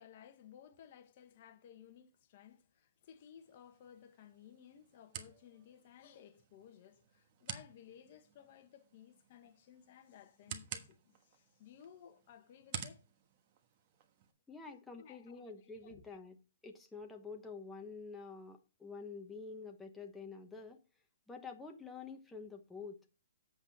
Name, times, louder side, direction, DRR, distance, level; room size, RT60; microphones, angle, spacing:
voice 1, 0.0-13.0 15.0-16.0, left 9 dB, 40° left, 1.3 m, -58 dB
sound 1, 3.4-14.3, right 8 dB, 35° right, 1.3 m, -51 dB
voice 2, 14.5-16.4 16.6-20.8 21.3-23.0, left 4 dB, 5° left, 1.0 m, -48 dB
8.3 x 7.9 x 4.1 m
hypercardioid pair, 165°, 0 cm